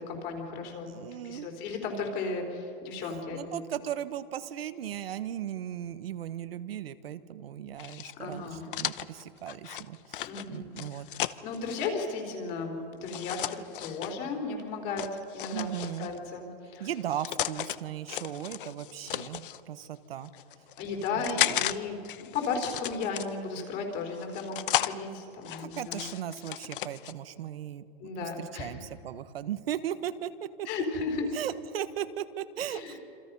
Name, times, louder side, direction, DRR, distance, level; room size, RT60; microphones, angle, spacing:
voice 1, 0.0-1.0 1.2-3.6 8.2-8.6 10.2-11.0 11.4-15.7 16.0-16.9 20.8-26.1 28.0-28.7 30.7-31.4 32.7-33.0, left 4 dB, 30° left, 3 dB, 3.8 m, -35 dB
voice 2, 0.8-1.5 3.3-11.1 15.5-16.1 16.8-20.3 21.1-21.2 21.5-21.6 25.6-30.7 31.3-33.0, right 10 dB, 85° right, 11 dB, 1.4 m, -37 dB
sound 1, 7.8-11.9 13.0-14.1 15.0-16.2 16.9-17.8 18.1-19.6 20.2-21.7 22.0-23.6 24.2-24.9 25.4-27.1, left 12 dB, 60° left, 0.9 m, -34 dB
27.5 x 27.0 x 5.5 m, 2.6 s
supercardioid pair, 170°, 29 cm